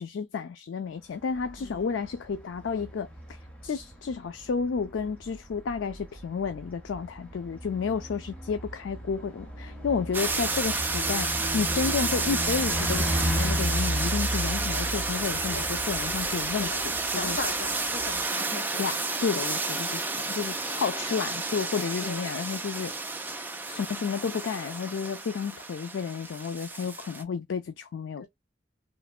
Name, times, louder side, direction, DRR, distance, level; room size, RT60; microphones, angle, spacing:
voice 1, 0.0-11.3 11.5-16.7 17.1-17.4 18.8-22.9 23.7-28.3, left 5 dB, 85° left, 0.4 m, -31 dB
Bus, 1.2-18.3, equal, 5° left, 0.8 m, -35 dB
sound 1, 10.1-27.2, right 3 dB, 10° right, 0.3 m, -31 dB
voice 2, 16.6-18.9 22.0-22.2 28.2-28.3, left 3 dB, 50° left, 0.7 m, -39 dB
3.2 x 2.1 x 2.3 m
head